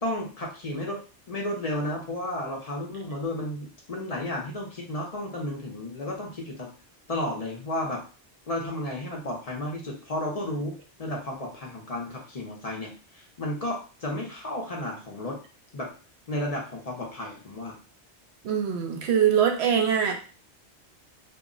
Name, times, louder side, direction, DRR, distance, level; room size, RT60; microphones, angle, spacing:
voice 1, 0.0-1.0 1.3-6.7 7.1-8.0 8.5-15.4 15.7-15.9 16.3-17.8, left 1 dB, 45° left, -1 dB, 0.5 m, -33 dB
voice 2, 18.4-20.1, right 8 dB, 70° right, 4 dB, 0.8 m, -23 dB
2.2 x 2.0 x 3.6 m, 0.36 s
omnidirectional pair, 1.2 m